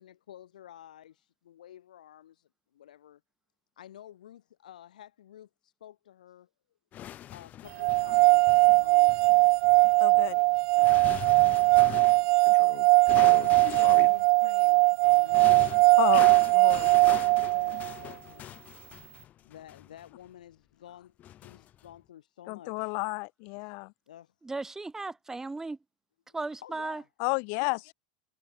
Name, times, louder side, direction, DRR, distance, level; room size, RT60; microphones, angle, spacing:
voice 1, 0.0-3.2 3.8-6.5 7.3-9.2 10.1-10.5 10.7-11.6 11.9-12.1 13.4-15.6 15.9-16.0 17.0-18.5 19.4-22.9 24.1-24.3 26.6-27.1 27.6-27.8, left 11 dB, 85° left, 2.0 m, -51 dB
sound 1, 6.9-12.3 13.1-14.3 15.0-20.3 21.2-22.0, left 12 dB, 40° left, 1.9 m, -42 dB
sound 2, 7.8-17.9, right 31 dB, 55° right, 0.4 m, -21 dB
voice 2, 10.0-10.3 12.5-14.1 16.0-16.9 22.5-23.9 27.2-27.9, left 39 dB, 60° left, 0.5 m, -33 dB
voice 3, 24.4-25.8 26.3-27.0, right 3 dB, 10° right, 2.1 m, -36 dB
hypercardioid pair, 100°, 4 cm